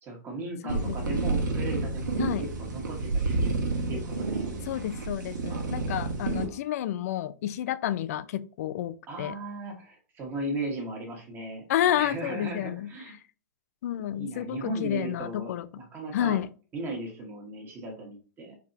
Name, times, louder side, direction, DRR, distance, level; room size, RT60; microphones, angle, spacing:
voice 1, 0.0-3.5 3.9-4.7 5.5-5.6 6.1-6.6 9.1-11.7 11.9-13.2 14.2-16.4 16.7-18.6, right 2 dB, 20° right, 1.4 m, -37 dB
voice 2, 0.6-1.4 2.2-2.5 4.7-9.4 11.7-12.9 13.8-15.8 16.1-16.5, left 11 dB, 55° left, 0.4 m, -30 dB
sound 1, 0.7-6.4, right 3 dB, 85° right, 1.4 m, -30 dB
4.7 x 3.5 x 2.7 m
hypercardioid pair, 155°, 10 cm